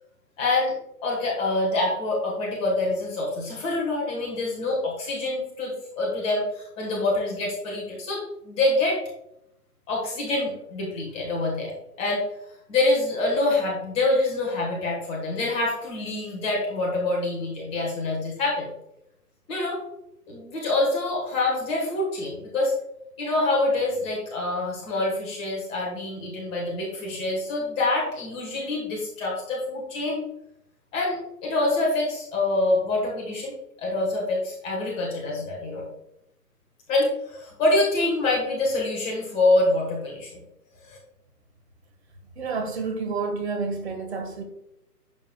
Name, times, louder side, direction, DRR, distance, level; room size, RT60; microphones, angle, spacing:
voice 1, 0.4-0.7 1.0-9.0 9.9-12.2 12.7-18.7 19.5-19.8 20.3-22.7 23.2-30.2 30.9-35.8 36.9-40.3 40.8-41.0, left 2 dB, 10° left, -3 dB, 1.4 m, -26 dB
voice 2, 42.4-44.4, right 4 dB, 40° right, 4 dB, 1.7 m, -29 dB
11.0 x 7.1 x 2.3 m, 0.81 s
figure-of-eight pair, 145°, 48 cm